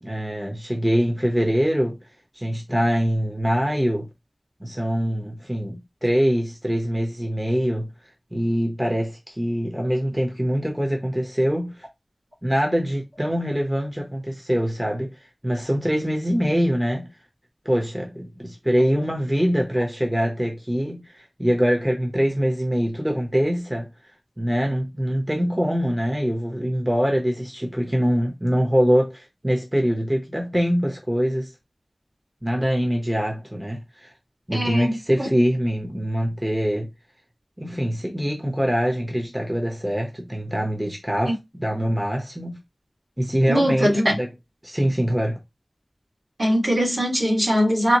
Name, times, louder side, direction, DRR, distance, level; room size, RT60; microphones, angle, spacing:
voice 1, 0.0-2.0 2.3-4.1 4.6-7.9 8.3-11.9 12.4-17.1 17.6-23.9 24.4-31.5 32.4-34.1 34.5-36.9 37.6-42.6 43.2-44.3 44.6-45.4, equal, 20° right, 0.8 m, -24 dB
voice 2, 34.5-34.9 35.2-35.3 41.3-41.4 43.5-44.2 46.4-48.0, equal, 60° right, 1.8 m, -21 dB
4.1 x 2.1 x 2.9 m
wide cardioid pair, 50°, 0 cm